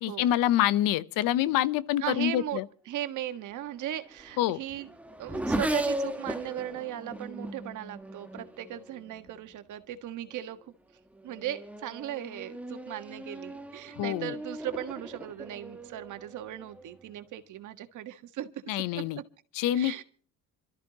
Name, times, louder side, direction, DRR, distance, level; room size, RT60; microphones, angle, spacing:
voice 1, 0.0-2.7 4.4-4.6 14.0-14.4 18.7-19.2 19.5-20.0, left 12 dB, 85° left, 0.9 m, -26 dB
voice 2, 2.0-2.6 2.9-4.9 5.2-10.7 11.2-18.5 18.9-19.2 19.7-20.0, right 12 dB, 65° right, 1.6 m, -37 dB
Race car auto racing / Accelerating revving vroom, 3.6-9.5 10.3-10.7 11.1-17.0, right 1 dB, 5° right, 1.3 m, -37 dB
27.0 x 13.5 x 2.9 m
cardioid pair, 115°, 32 cm